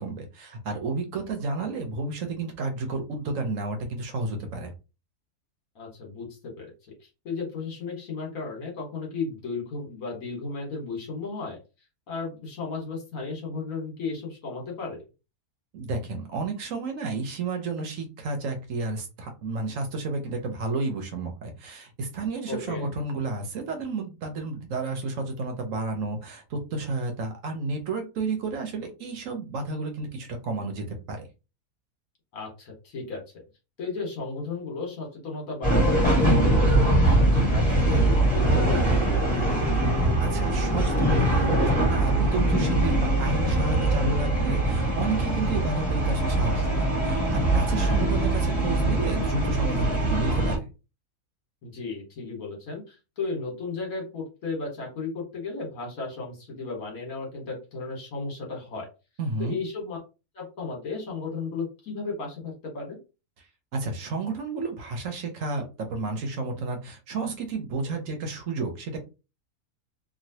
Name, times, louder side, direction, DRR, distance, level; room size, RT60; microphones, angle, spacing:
voice 1, 0.0-4.7 15.7-31.2 40.2-50.7 59.2-59.6 63.7-69.0, right 3 dB, 65° right, 4 dB, 1.0 m, -31 dB
voice 2, 5.7-6.3 6.6-6.7 7.2-11.6 12.1-15.0 22.5-22.9 32.3-33.2 33.8-39.4 47.7-48.1 51.6-58.9 59.4-60.0 60.3-63.0, left 4 dB, 65° left, 0 dB, 1.7 m, -34 dB
sound 1, 35.6-50.6, right 1 dB, 5° left, 1.5 m, -22 dB
3.1 x 2.6 x 2.7 m, 0.30 s
omnidirectional pair, 1.6 m